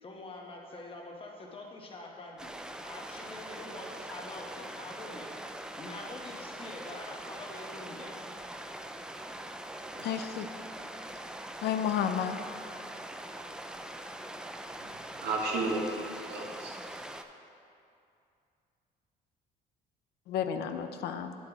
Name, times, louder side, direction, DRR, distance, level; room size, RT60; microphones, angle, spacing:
voice 1, 0.0-2.5 2.8-5.3 5.8-8.2, left 2 dB, 35° left, 0 dB, 1.2 m, -45 dB
sound 1, 2.4-17.2, right 1 dB, 5° right, 0.3 m, -43 dB
voice 2, 10.0-10.5 11.6-12.4 20.3-21.3, left 8 dB, 75° left, 8 dB, 0.5 m, -31 dB
voice 3, 14.8-17.0, right 2 dB, 80° right, -1 dB, 1.4 m, -34 dB
9.8 x 7.7 x 3.0 m, 2.5 s
cardioid pair, 110°, 17 cm